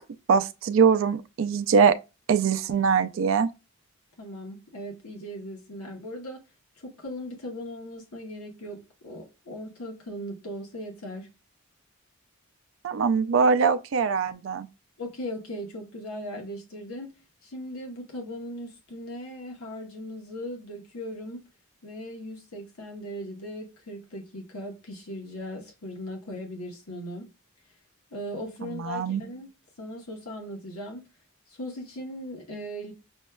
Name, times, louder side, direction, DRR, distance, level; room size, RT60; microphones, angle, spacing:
voice 1, 0.3-2.0 2.3-3.5 12.8-14.7 28.6-29.2, right 6 dB, 60° right, 0.3 m, -22 dB
voice 2, 4.2-6.4 6.8-11.3 15.0-17.1 17.4-21.4 21.8-27.3 28.1-29.5 29.8-31.1 31.5-32.9, equal, 90° left, 0.9 m, -38 dB
6.1 x 2.2 x 2.2 m
head